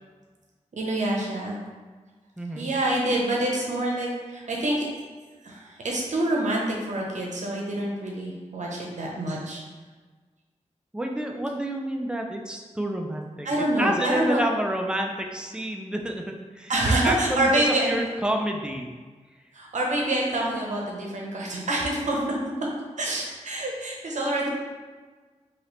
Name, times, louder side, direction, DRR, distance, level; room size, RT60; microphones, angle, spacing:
voice 1, 0.7-1.6 2.5-4.8 5.4-9.6 13.4-14.4 16.7-17.9 19.5-22.2 23.0-24.5, right 1 dB, 70° right, -2 dB, 0.7 m, -26 dB
voice 2, 2.4-2.7 10.9-13.5 13.8-16.7 17.0-18.9, right 1 dB, 5° right, 2 dB, 0.4 m, -29 dB
3.0 x 2.8 x 3.0 m, 1.4 s
wide cardioid pair, 85°, 13 cm